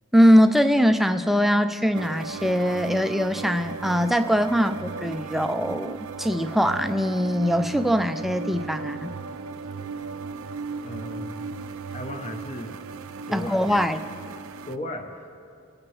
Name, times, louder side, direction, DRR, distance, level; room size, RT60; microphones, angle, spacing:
voice 1, 0.1-9.1 13.3-14.0, equal, ahead, 8 dB, 0.3 m, -22 dB
sound 1, 1.9-14.8, right 5 dB, 75° right, 0.4 m, -36 dB
voice 2, 10.8-11.5 11.9-12.8 13.3-13.8 14.6-15.3, left 1 dB, 30° left, 3 dB, 0.7 m, -36 dB
24.5 x 8.8 x 3.2 m, 2.6 s
head